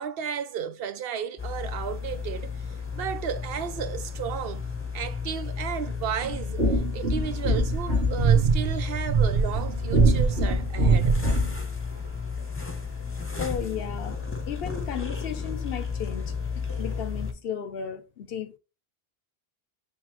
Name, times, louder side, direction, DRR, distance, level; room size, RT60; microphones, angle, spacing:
voice 1, 0.0-2.5 2.9-4.7 4.9-11.2, right 8 dB, 75° right, 0.8 m, -33 dB
sound 1, 1.4-17.3, left 5 dB, 15° left, 0.7 m, -33 dB
sound 2, 6.2-11.6, right 3 dB, 90° right, 1.6 m, -23 dB
voice 2, 13.4-18.6, left 8 dB, 70° left, 0.9 m, -35 dB
5.4 x 3.2 x 3.0 m
omnidirectional pair, 1.0 m